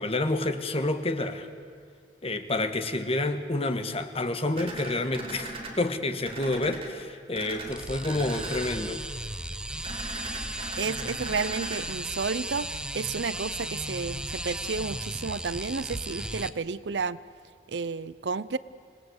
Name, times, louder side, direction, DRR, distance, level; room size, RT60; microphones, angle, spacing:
voice 1, 0.0-1.5 2.2-9.0, left 2 dB, 35° left, 8 dB, 1.4 m, -29 dB
sound 1, 4.5-5.7 6.2-6.9 7.3-7.7 8.0-8.7 9.8-11.8, right 2 dB, 35° right, 4.0 m, -39 dB
sound 2, 7.7-16.5, right 1 dB, 5° right, 0.7 m, -35 dB
voice 2, 10.8-17.2 17.7-18.6, right 4 dB, 75° right, 17 dB, 0.6 m, -31 dB
27.0 x 19.0 x 8.0 m, 2.3 s
head